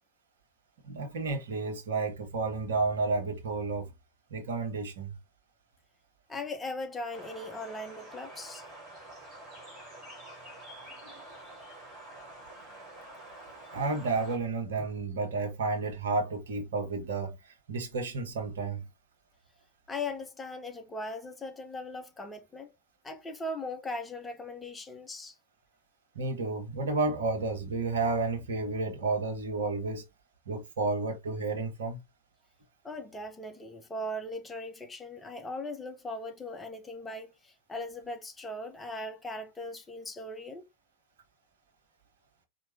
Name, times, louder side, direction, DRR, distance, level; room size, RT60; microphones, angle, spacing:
voice 1, 0.8-3.9 4.3-5.2 10.3-10.4 11.0-11.1 13.7-18.8 26.1-30.0 30.5-32.0, right 3 dB, 65° right, 1.2 m, -31 dB
voice 2, 6.3-8.7 19.9-22.7 23.0-25.4 32.8-40.7, left 2 dB, 10° left, 0.9 m, -39 dB
sound 1, 7.1-14.4, right 1 dB, 20° right, 2.5 m, -48 dB
4.6 x 3.0 x 2.7 m
figure-of-eight pair, 90°, 0 cm